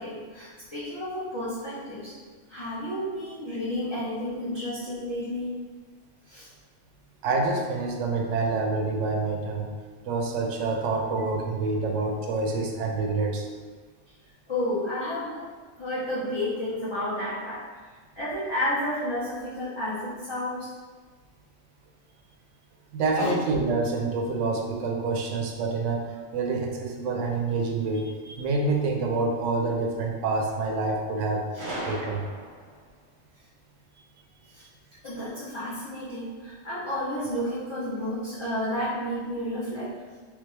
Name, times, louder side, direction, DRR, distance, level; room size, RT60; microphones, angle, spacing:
voice 1, 0.0-2.1 2.5-5.5 6.3-6.5 14.5-17.6 18.1-20.7 23.2-23.3 31.5-31.7 34.5-34.6 35.0-39.9, left 1 dB, 25° left, -10 dB, 0.7 m, -31 dB
voice 2, 7.2-9.7 10.1-13.5 22.9-31.4 31.8-32.2, right 3 dB, 75° right, 2 dB, 0.9 m, -27 dB
Gunshot gunfire, 31.6-32.8, right 1 dB, 45° right, 0.9 m, -36 dB
3.4 x 3.3 x 3.2 m, 1.4 s
omnidirectional pair, 1.4 m